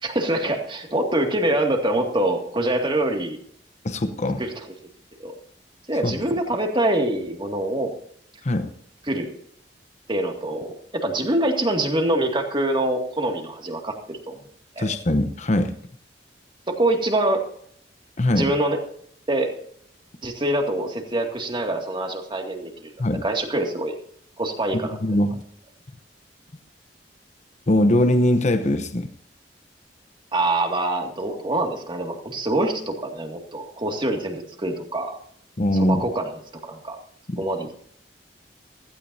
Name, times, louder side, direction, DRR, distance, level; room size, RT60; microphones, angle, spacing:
voice 1, 0.0-3.4 4.4-4.6 5.2-5.3 5.9-7.9 9.1-9.3 10.1-14.4 14.8-14.9 16.7-17.4 18.3-18.8 19.3-19.5 20.2-22.9 23.2-23.9 24.4-25.0 30.3-35.2 35.7-36.4 36.7-37.0 37.4-37.9, right 1 dB, 30° right, 3 dB, 2.2 m, -25 dB
voice 2, 3.8-4.4 6.0-6.2 8.4-8.7 14.8-15.7 18.2-18.5 23.0-23.2 24.7-25.4 27.7-29.1 35.6-36.0 37.3-37.4, left 1 dB, 40° left, 9 dB, 0.9 m, -21 dB
16.0 x 15.5 x 2.7 m, 0.63 s
head